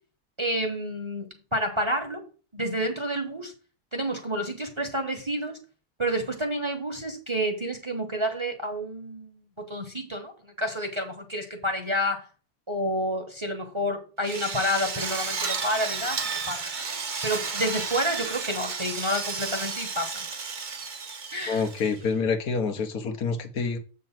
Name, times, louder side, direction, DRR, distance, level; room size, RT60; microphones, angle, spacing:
voice 1, 0.4-2.2 2.5-3.5 3.9-5.6 6.0-12.2 12.7-16.7 17.2-20.2 21.3-21.6, equal, 20° right, 1.0 m, -29 dB
Drill, 14.2-22.1, right 5 dB, 40° right, 0.8 m, -32 dB
voice 2, 21.5-23.8, left 5 dB, 75° left, 1.5 m, -27 dB
7.6 x 3.9 x 5.8 m
omnidirectional pair, 1.6 m